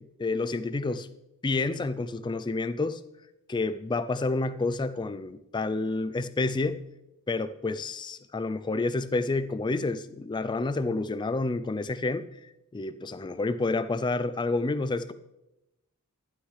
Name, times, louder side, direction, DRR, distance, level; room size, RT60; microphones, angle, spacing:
voice 1, 0.2-1.1 1.4-3.0 3.5-6.8 7.3-12.3 12.7-15.1, left 3 dB, 20° left, 14 dB, 0.3 m, -29 dB
11.5 x 11.5 x 3.2 m, 0.92 s
head